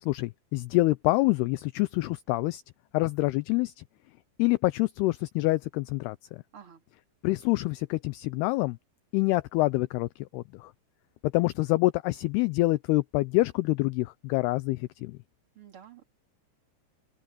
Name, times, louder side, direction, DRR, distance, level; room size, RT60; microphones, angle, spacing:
voice 1, 0.0-2.6 2.9-3.8 4.4-6.4 7.2-8.8 9.1-10.7 11.3-15.2, left 20 dB, 80° left, 2.4 m, -26 dB
voice 2, 6.5-6.8 15.5-16.1, right 9 dB, 35° right, 3.2 m, -50 dB
omnidirectional pair, 5.0 m